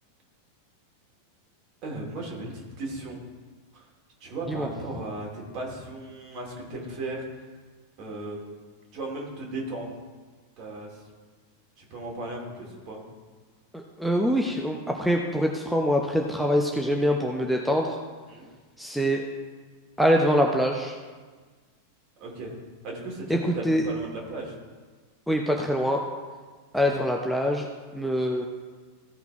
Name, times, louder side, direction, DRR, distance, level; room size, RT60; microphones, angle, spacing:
voice 1, 1.8-3.2 3.7-3.9 4.2-7.2 8.0-8.4 8.9-9.9 10.6-11.0 11.8-13.0 18.3-18.5 22.2-22.5 22.8-24.5, right 2 dB, 40° right, -1 dB, 2.6 m, -36 dB
voice 2, 13.7-18.0 18.8-19.2 20.0-21.0 23.3-23.8 25.3-26.0 26.7-27.7 27.9-28.5, equal, ahead, 1 dB, 0.7 m, -24 dB
15.0 x 5.8 x 3.5 m, 1.4 s
figure-of-eight pair, 90°, 0 cm